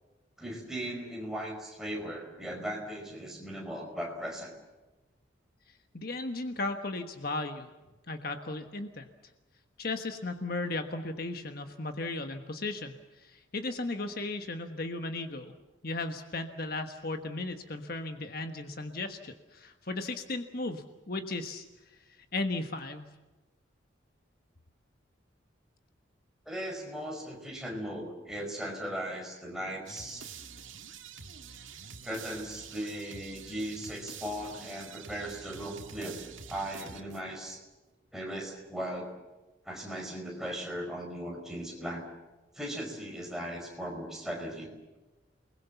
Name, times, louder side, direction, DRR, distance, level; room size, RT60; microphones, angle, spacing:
voice 1, 0.4-4.5 26.4-30.3 32.0-36.2 36.5-37.6 38.1-39.1 39.6-42.0 42.5-45.0, equal, ahead, 0 dB, 5.0 m, -38 dB
voice 2, 5.9-7.7 8.1-9.1 9.8-15.5 15.8-21.6 22.3-23.1, left 2 dB, 50° left, 6 dB, 1.4 m, -36 dB
sound 1, 29.9-37.5, right 6 dB, 85° right, 1.9 m, -47 dB
29.0 x 20.5 x 7.1 m, 1.1 s
head